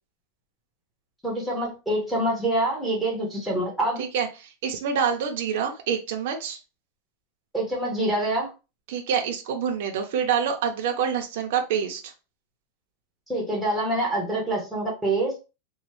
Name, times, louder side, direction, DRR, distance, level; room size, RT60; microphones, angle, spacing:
voice 1, 1.2-4.0 7.5-8.5 13.3-15.4, right 1 dB, ahead, -3 dB, 0.9 m, -26 dB
voice 2, 4.0-6.6 8.9-12.0, right 7 dB, 60° right, 2 dB, 0.5 m, -26 dB
3.0 x 2.1 x 3.0 m, 0.30 s
supercardioid pair, 170°, 0 cm